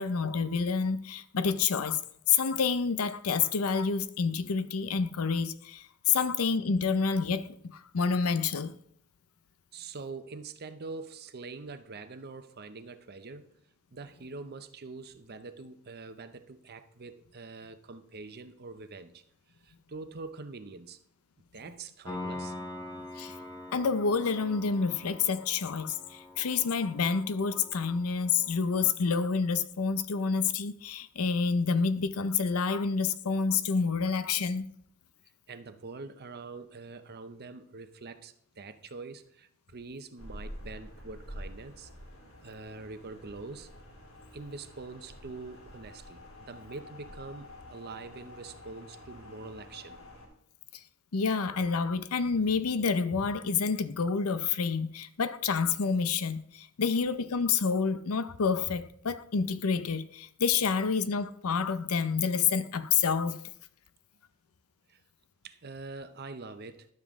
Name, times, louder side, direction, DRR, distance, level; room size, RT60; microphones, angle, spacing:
voice 1, 0.0-2.0 2.3-8.7 23.2-23.4 23.7-34.7 50.7-50.8 51.1-63.4, left 5 dB, 90° left, 0.6 m, -28 dB
voice 2, 9.7-13.5 13.9-19.2 19.6-21.0 21.5-22.5 35.5-41.9 42.4-43.7 44.3-50.0 64.9-65.0 65.4-66.9, right 3 dB, 50° right, 0.7 m, -44 dB
Piano, 22.1-28.8, left 2 dB, 15° left, 1.2 m, -44 dB
sound 1, 40.2-50.3, left 1 dB, 70° left, 2.9 m, -48 dB
12.0 x 7.2 x 3.6 m
head